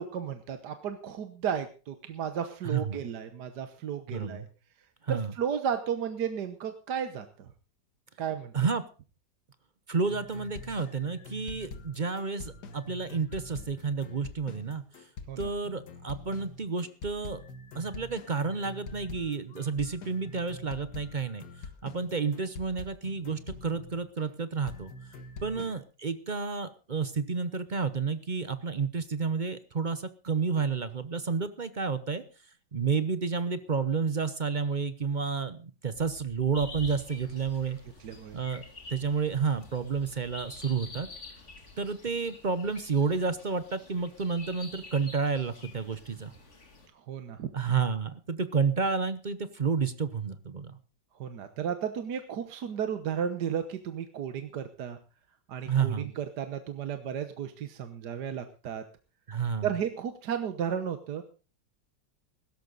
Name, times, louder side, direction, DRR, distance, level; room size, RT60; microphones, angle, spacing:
voice 1, 0.0-4.5 5.1-7.5 8.2-8.5 15.3-15.5 25.6-25.7 38.0-38.4 47.1-47.5 51.2-55.0 55.5-58.8 59.6-61.2, right 8 dB, 65° right, 9 dB, 1.6 m, -34 dB
voice 2, 2.6-3.0 4.1-4.5 5.1-5.3 8.5-8.8 9.9-14.8 15.4-17.4 17.7-21.4 21.8-24.9 25.4-32.2 32.7-37.8 38.3-38.6 38.9-41.1 41.8-46.3 47.5-50.8 55.6-56.1 59.3-59.7, right 5 dB, 40° right, 12 dB, 0.6 m, -30 dB
sound 1, 10.0-24.3 24.7-25.8, left 3 dB, 65° left, 2.0 m, -45 dB
sound 2, 35.9-41.7, equal, 10° left, 5.8 m, -58 dB
sound 3, 36.5-46.9, left 2 dB, 40° left, 2.7 m, -48 dB
16.5 x 13.5 x 4.0 m, 0.35 s
omnidirectional pair, 2.0 m